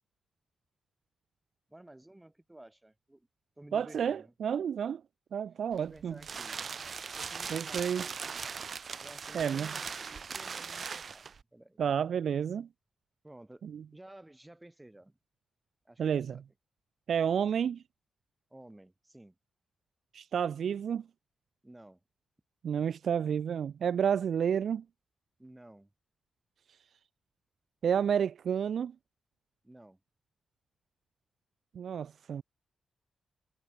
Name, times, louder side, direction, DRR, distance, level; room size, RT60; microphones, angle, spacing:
voice 1, 1.7-3.3 3.6-4.3 5.8-6.7 7.1-8.2 9.0-11.3 11.5-11.8 13.2-13.6 13.9-15.2 15.9-16.4 18.5-19.4 21.6-22.0 25.4-25.9 29.6-30.0, right 1 dB, 10° right, 7.3 m, -53 dB
voice 2, 3.7-5.0 5.3-6.1 7.5-8.1 9.3-9.7 11.8-12.7 13.6-13.8 16.0-16.4 17.1-17.8 20.1-21.0 22.6-24.8 27.8-28.9 31.7-32.4, right 8 dB, 70° right, 0.7 m, -30 dB
sound 1, 5.7-11.4, right 5 dB, 50° right, 3.5 m, -40 dB
cardioid pair, 100°, 0 cm